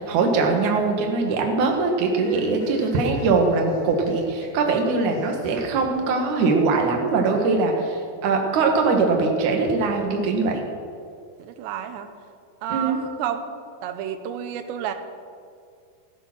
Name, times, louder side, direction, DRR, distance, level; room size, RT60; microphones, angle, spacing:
voice 1, 0.0-10.6 12.7-13.0, right 4 dB, 55° right, 2 dB, 2.6 m, -22 dB
sound 1, 2.0-6.6, left 2 dB, 60° left, 5.4 m, -39 dB
voice 2, 11.4-12.1 12.6-13.4 13.8-14.9, right 9 dB, 80° right, 8 dB, 3.0 m, -30 dB
14.5 x 11.5 x 6.2 m, 2.3 s
omnidirectional pair, 5.0 m